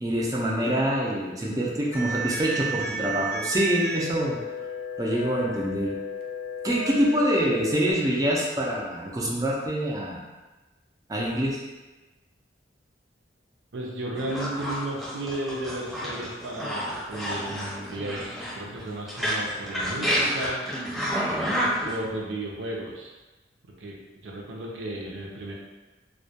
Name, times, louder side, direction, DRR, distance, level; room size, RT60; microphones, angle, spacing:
voice 1, 0.0-4.4 5.0-6.0 6.6-10.2 11.1-11.6, equal, 20° right, -4 dB, 0.3 m, -25 dB
sound 1, 1.9-7.9, right 1 dB, 55° left, 0.4 m, -33 dB
voice 2, 13.7-20.6 21.5-23.2 23.8-25.5, right 1 dB, 80° right, -1 dB, 0.5 m, -34 dB
sound 2, 14.2-22.0, equal, ahead, 0.7 m, -29 dB
2.1 x 2.1 x 2.7 m, 1.2 s
head